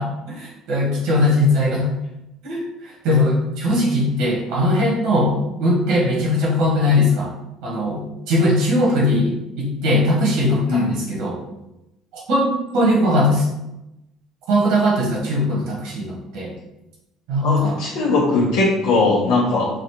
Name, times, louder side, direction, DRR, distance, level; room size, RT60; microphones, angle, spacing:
voice 1, 0.0-1.9 2.4-7.3 7.6-11.4 12.1-13.5 14.5-16.5 17.3-17.8, left 1 dB, 80° right, -3 dB, 1.6 m, -20 dB
voice 2, 17.4-19.7, left 3 dB, 85° left, -6 dB, 1.0 m, -19 dB
4.2 x 2.6 x 4.5 m, 0.91 s
cardioid pair, 120°, 0 cm